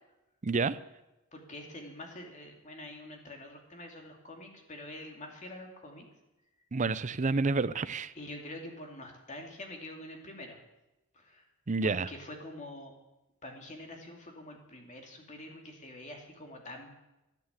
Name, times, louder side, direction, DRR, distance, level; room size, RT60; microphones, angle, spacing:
voice 1, 0.4-0.8 6.7-8.1 11.7-12.1, right 3 dB, 35° right, 14 dB, 0.5 m, -29 dB
voice 2, 1.3-6.1 8.1-10.6 11.1-11.4 11.8-12.9 13.4-16.9, left 1 dB, 35° left, 2 dB, 2.7 m, -46 dB
13.0 x 10.5 x 8.2 m, 0.96 s
head